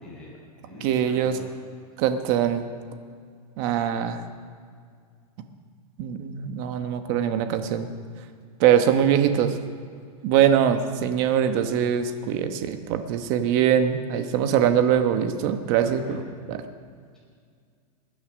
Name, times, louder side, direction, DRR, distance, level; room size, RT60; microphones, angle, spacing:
voice 1, 0.0-1.5 15.7-16.1, equal, 5° left, -7 dB, 5.2 m, -44 dB
voice 2, 0.8-1.4 2.0-2.6 3.6-4.2 6.0-7.9 8.6-9.6 10.2-16.2 16.5-16.6, right 9 dB, 35° right, 8 dB, 1.1 m, -22 dB
22.0 x 9.4 x 6.4 m, 2.1 s
supercardioid pair, 165°, 20 cm